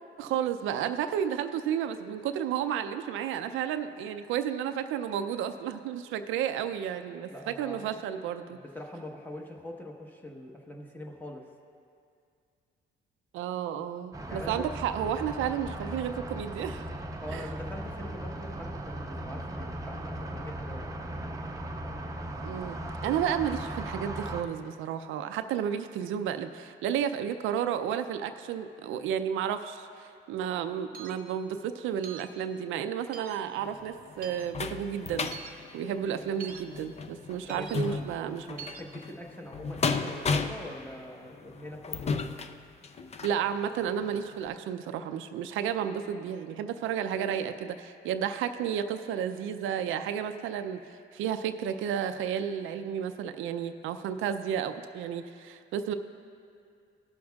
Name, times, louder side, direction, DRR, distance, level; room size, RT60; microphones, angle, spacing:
voice 1, 0.2-8.6 13.3-16.9 17.3-17.4 22.4-35.3 35.7-38.5 43.2-50.8 51.1-55.9, right 9 dB, 90° right, 9 dB, 0.4 m, -32 dB
voice 2, 7.3-8.0 8.5-11.5 14.3-14.7 17.2-20.9 37.5-38.1 38.5-42.2, left 1 dB, 10° left, 0 dB, 1.1 m, -43 dB
sound 1, 14.1-24.4, right 1 dB, 15° right, 0.7 m, -38 dB
sound 2, 30.9-31.2 32.0-32.3 33.1-33.4 34.2-34.5 35.3-35.5 36.4-36.6 37.5-37.7 38.6-38.8, right 7 dB, 45° right, 0.9 m, -43 dB
sound 3, 33.6-43.4 44.0-44.1 44.5-44.6, left 4 dB, 35° left, 0.5 m, -35 dB
19.0 x 6.4 x 2.3 m, 2.3 s
cardioid pair, 90°, 20 cm